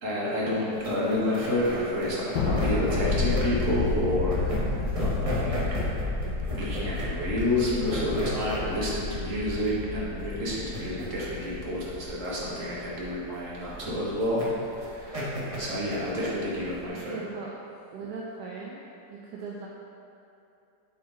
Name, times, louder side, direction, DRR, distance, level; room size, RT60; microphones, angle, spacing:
voice 1, 0.0-4.7 5.0-5.6 6.5-14.4 14.7-17.2, left 1 dB, 50° right, -6 dB, 1.7 m, -29 dB
sound 1, 0.7-16.9, equal, 25° right, 1.0 m, -36 dB
Thunder, 2.4-13.0, left 3 dB, 80° left, 1.4 m, -31 dB
voice 2, 16.9-17.5 17.9-18.8 19.1-19.7, right 4 dB, 75° right, -3 dB, 1.2 m, -38 dB
8.2 x 4.3 x 3.8 m, 2.8 s
omnidirectional pair, 1.9 m